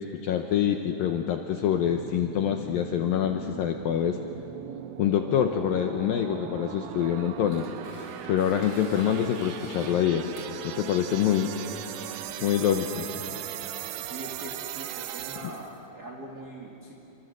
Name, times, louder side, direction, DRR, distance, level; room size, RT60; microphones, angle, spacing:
voice 1, 0.0-4.2 5.0-7.7 8.3-10.3 10.6-11.5 12.4-13.1, left 9 dB, 75° left, 5 dB, 2.2 m, -26 dB
sound 1, 1.8-15.8, right 11 dB, 75° right, 2.8 m, -39 dB
Tearing, 6.8-13.6, left 1 dB, 30° left, 6.8 m, -52 dB
voice 2, 14.1-16.9, right 1 dB, 30° right, -2 dB, 1.8 m, -42 dB
28.0 x 24.5 x 8.0 m, 2.9 s
omnidirectional pair, 5.1 m